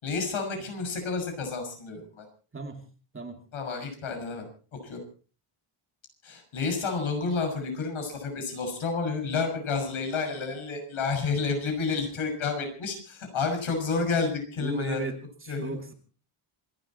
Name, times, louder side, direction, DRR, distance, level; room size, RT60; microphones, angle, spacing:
voice 1, 0.0-2.3 3.5-4.5 4.8-5.0 6.2-15.0 15.5-15.8, left 4 dB, 70° left, 4 dB, 6.5 m, -30 dB
voice 2, 14.6-15.9, right 3 dB, 25° right, 4 dB, 2.7 m, -35 dB
27.0 x 12.0 x 4.3 m, 0.39 s
wide cardioid pair, 170°, 50 cm